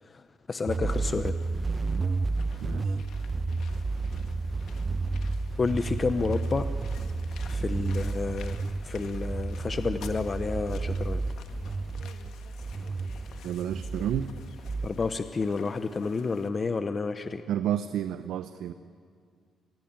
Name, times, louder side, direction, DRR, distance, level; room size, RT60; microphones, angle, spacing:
voice 1, 0.0-1.3 5.6-6.7 7.5-11.2 14.8-17.4, left 4 dB, 35° left, 10 dB, 0.9 m, -30 dB
sound 1, 0.7-14.9, right 3 dB, 30° right, 0.9 m, -31 dB
sound 2, 0.9-16.5, left 8 dB, 75° left, 1.6 m, -53 dB
voice 2, 2.6-3.0 13.4-14.3 17.5-18.7, right 10 dB, 80° right, 11 dB, 0.7 m, -30 dB
24.5 x 16.5 x 9.0 m, 2.1 s
cardioid pair, 90°, 0 cm